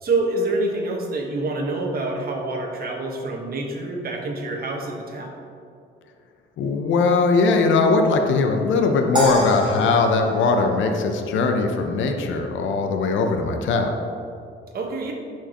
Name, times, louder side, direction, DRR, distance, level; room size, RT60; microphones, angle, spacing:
voice 1, 0.0-5.3 14.7-15.1, right 2 dB, 50° right, 0 dB, 1.3 m, -26 dB
voice 2, 6.6-13.9, left 4 dB, 75° left, 4 dB, 0.7 m, -20 dB
sound 1, 9.2-11.5, equal, 20° right, 1.8 m, -29 dB
11.5 x 4.6 x 3.0 m, 2.5 s
cardioid pair, 90°, 20 cm